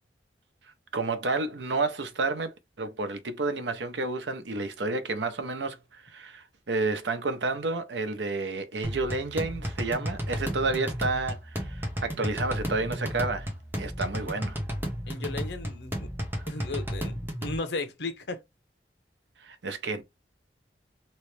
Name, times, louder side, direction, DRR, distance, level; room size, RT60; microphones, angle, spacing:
voice 1, 0.9-13.5 13.8-14.6 19.4-20.0, right 3 dB, 85° right, 0.7 m, -30 dB
sound 1, 8.8-17.6, equal, 10° right, 0.9 m, -33 dB
voice 2, 15.1-16.1 16.5-18.4, left 3 dB, 75° left, 0.8 m, -35 dB
3.1 x 3.0 x 3.2 m
head